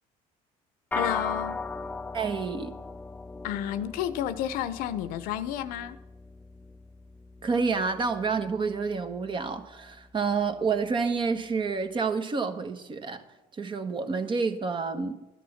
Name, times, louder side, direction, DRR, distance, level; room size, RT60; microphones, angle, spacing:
voice 1, 0.9-1.6 3.4-6.0, left 11 dB, 80° left, 0.8 m, -31 dB
sound 1, 0.9-10.4, left 4 dB, 10° left, 0.5 m, -39 dB
voice 2, 2.1-2.8 7.4-13.2 13.6-15.2, right 5 dB, 35° right, 1.3 m, -29 dB
12.5 x 10.0 x 5.8 m
cardioid pair, 100°, 15 cm